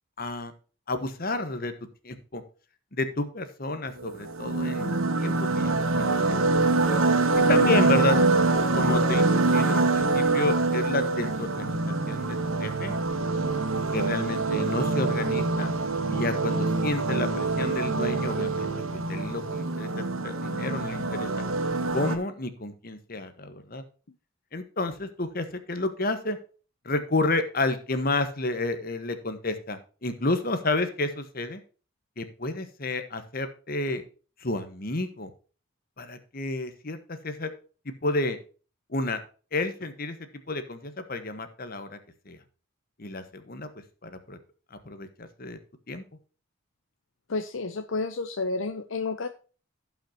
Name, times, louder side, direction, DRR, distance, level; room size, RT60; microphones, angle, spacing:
voice 1, 0.2-0.5 0.9-1.7 2.0-2.4 2.9-7.0 7.5-8.2 8.7-12.9 13.9-15.7 16.1-18.7 19.1-21.3 21.9-23.8 24.5-26.4 26.8-31.6 32.2-34.0 34.4-35.3 36.0-37.5 38.0-38.4 38.9-39.2 39.5-40.2 40.5-42.0 42.3-42.4 43.0-43.7 44.0-44.4 44.7-45.6 45.9-46.0, left 2 dB, 45° left, 9 dB, 1.3 m, -31 dB
sound 1, 4.0-22.2, right 3 dB, 80° right, 1.3 m, -25 dB
voice 2, 47.3-49.3, left 3 dB, 70° left, 8 dB, 0.7 m, -30 dB
17.0 x 5.7 x 2.8 m, 0.36 s
head